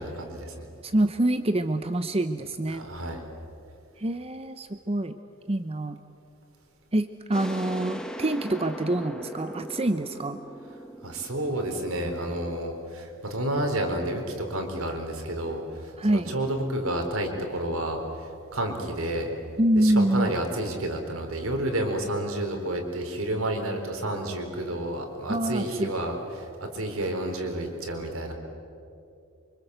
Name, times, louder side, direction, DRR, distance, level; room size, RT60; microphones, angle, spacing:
voice 1, 0.0-0.7 2.7-3.2 11.0-19.3 19.8-28.3, right 1 dB, 85° right, 3 dB, 4.1 m, -30 dB
voice 2, 0.8-2.9 4.0-5.1 5.5-6.0 6.9-10.4 16.0-16.3 19.6-20.3 25.3-25.9, right 1 dB, 30° right, 9 dB, 0.8 m, -26 dB
sound 1, 7.3-12.8, equal, 5° left, 1.4 m, -39 dB
28.5 x 25.0 x 8.1 m, 2.6 s
head